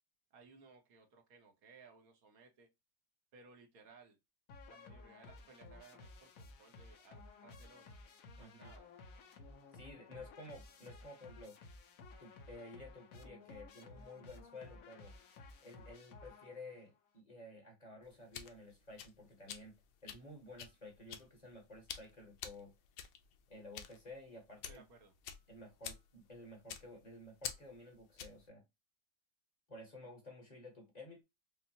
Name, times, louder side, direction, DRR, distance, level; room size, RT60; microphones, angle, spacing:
voice 1, 0.3-2.7 3.3-4.2 4.7-8.0 8.4-8.9 10.1-10.2 24.7-25.1, right 4 dB, 65° right, 1.4 m, -61 dB
sound 1, 4.5-16.9, left 3 dB, 65° left, 1.1 m, -56 dB
voice 2, 8.4-8.7 9.7-11.6 12.2-15.1 15.6-19.7 20.0-22.7 23.5-24.8 25.5-28.6 29.7-31.2, left 2 dB, 30° left, 1.2 m, -53 dB
sound 2, 18.0-28.5, left 8 dB, 90° left, 1.2 m, -50 dB
5.3 x 2.1 x 2.7 m
omnidirectional pair, 1.7 m